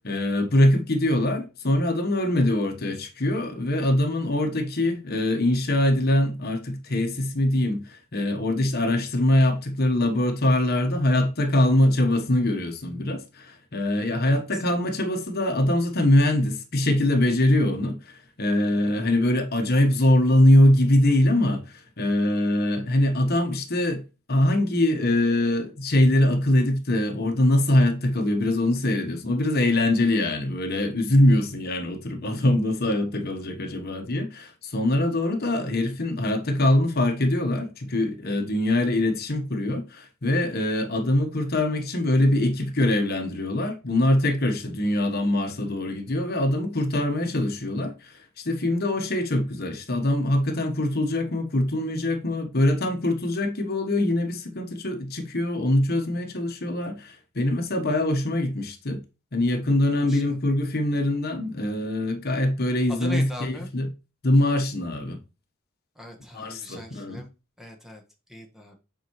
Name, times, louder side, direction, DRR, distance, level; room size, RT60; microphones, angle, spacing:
voice 1, 0.0-24.0 24.3-59.0 59.3-63.9 64.2-65.2 66.3-67.2, left 1 dB, 50° left, 1.2 m, -23 dB
voice 2, 14.2-14.6 59.9-60.4 62.9-63.7 66.0-67.3 67.6-68.0 68.3-68.7, left 1 dB, ahead, 1.2 m, -40 dB
8.1 x 4.6 x 3.1 m
head